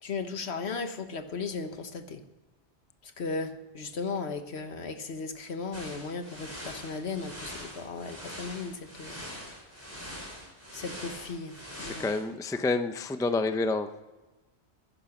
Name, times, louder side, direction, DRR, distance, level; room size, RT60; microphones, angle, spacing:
voice 1, 0.0-2.2 3.0-9.3 10.7-11.5 11.8-12.1, left 4 dB, 70° left, 8 dB, 1.5 m, -36 dB
sound 1, 5.7-12.2, equal, 10° right, 4.5 m, -43 dB
voice 2, 11.8-13.9, left 3 dB, 5° left, 9 dB, 0.5 m, -29 dB
16.0 x 11.0 x 5.9 m, 1.2 s
omnidirectional pair, 1.2 m